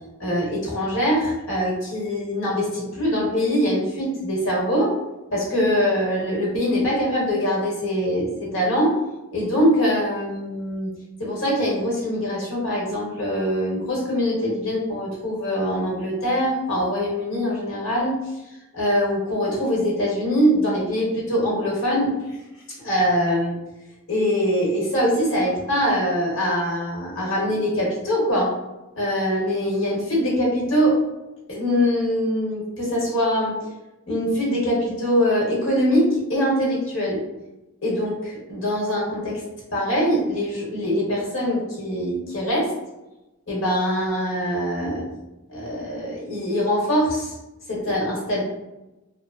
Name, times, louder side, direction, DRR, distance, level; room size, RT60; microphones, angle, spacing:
voice 1, 0.2-4.9 5.3-9.0 9.3-10.9 11.2-18.2 18.7-22.1 22.8-23.5 24.1-28.5 28.9-31.0 31.5-33.5 34.1-37.2 37.8-39.4 39.7-42.7 43.5-45.1 45.5-47.3 47.7-48.4, equal, 60° left, -5 dB, 1.1 m, -23 dB
2.8 x 2.0 x 2.4 m, 0.99 s
head